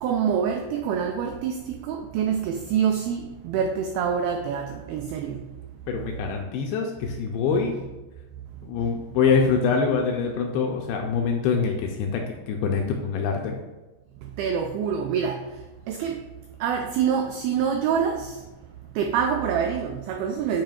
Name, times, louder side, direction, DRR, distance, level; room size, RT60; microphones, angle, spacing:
voice 1, 0.0-5.5 14.2-15.5 15.9-16.2 16.6-18.4 19.0-20.6, right 7 dB, 85° right, 4 dB, 2.1 m, -26 dB
voice 2, 5.9-7.8 8.6-13.5, left 5 dB, 80° left, 2 dB, 2.3 m, -24 dB
9.1 x 5.0 x 2.4 m, 1.1 s
omnidirectional pair, 4.8 m